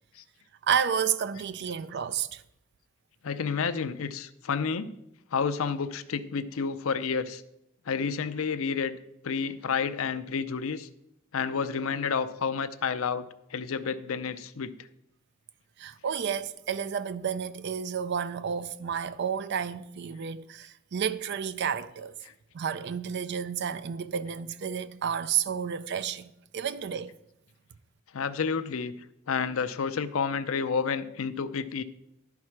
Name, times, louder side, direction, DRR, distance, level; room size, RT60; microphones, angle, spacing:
voice 1, 0.6-2.4 15.8-22.1 22.5-27.1, right 7 dB, 55° right, 0.4 m, -31 dB
voice 2, 3.2-4.9 5.3-7.4 7.9-9.0 9.2-10.9 11.3-14.7 22.2-22.3 28.1-28.9 29.3-31.8, left 5 dB, 75° left, 0.5 m, -30 dB
10.5 x 4.7 x 5.8 m
head